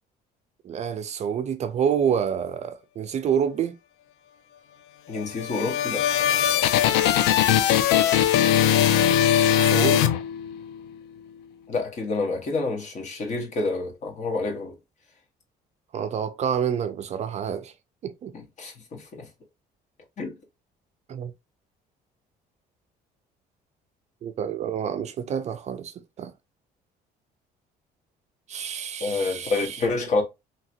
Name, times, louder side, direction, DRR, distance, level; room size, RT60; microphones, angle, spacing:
voice 1, 0.6-3.7 9.6-10.1 15.9-17.7 18.0-18.3 21.1-21.3 24.2-26.3 28.5-29.8, right 8 dB, 45° right, 0.4 m, -28 dB
voice 2, 5.1-6.1 11.7-14.8 18.3-19.3 20.2-20.3 29.0-30.2, left 3 dB, 45° left, 1.1 m, -28 dB
sound 1, 5.2-10.8, left 10 dB, 90° left, 0.4 m, -20 dB
2.8 x 2.5 x 2.7 m
cardioid pair, 110°, 17 cm